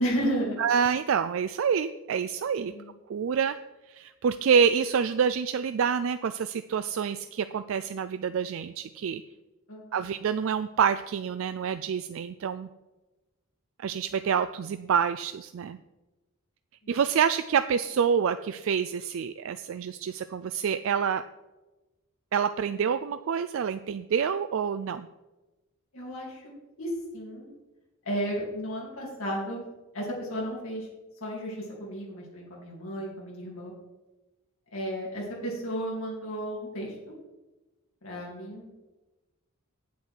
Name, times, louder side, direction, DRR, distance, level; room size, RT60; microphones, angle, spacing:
voice 1, 0.0-0.6 2.6-2.9 9.7-10.0 25.9-26.5 26.8-27.5 28.0-29.6 29.9-30.9 31.2-33.7 34.7-37.1 38.0-38.7, equal, 85° left, -3 dB, 3.0 m, -33 dB
voice 2, 0.6-2.7 3.1-3.6 3.9-9.2 9.9-12.7 13.8-15.8 16.9-21.2 22.3-25.1, right 7 dB, 70° right, 11 dB, 0.3 m, -27 dB
8.3 x 8.1 x 4.5 m, 1.1 s
head